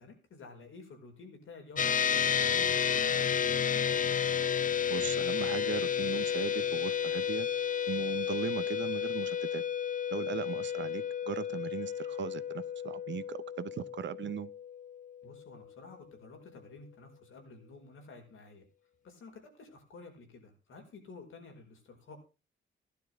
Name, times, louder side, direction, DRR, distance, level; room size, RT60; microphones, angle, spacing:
voice 1, 0.0-3.8 10.2-10.4 15.2-18.6 19.0-22.2, left 3 dB, 85° left, 5.1 m, -52 dB
sound 1, 1.8-15.4, left 8 dB, 40° left, 0.6 m, -31 dB
voice 2, 4.9-7.5 7.9-9.6 10.1-14.5, right 9 dB, 65° right, 0.8 m, -38 dB
16.0 x 11.5 x 3.6 m
wide cardioid pair, 125°, 20 cm